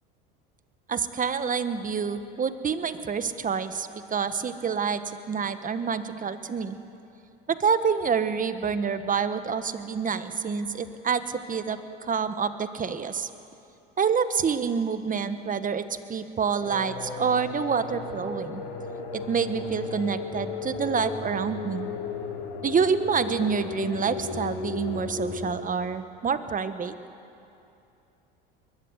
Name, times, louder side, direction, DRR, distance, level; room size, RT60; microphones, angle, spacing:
voice 1, 0.9-5.0 5.3-6.8 7.5-13.3 14.0-18.6 19.1-21.9 22.6-26.9, right 6 dB, 30° right, 11 dB, 1.4 m, -27 dB
sound 1, 16.6-25.5, left 4 dB, 75° left, 3.7 m, -35 dB
22.0 x 20.0 x 8.1 m, 2.7 s
hypercardioid pair, 90°, 29 cm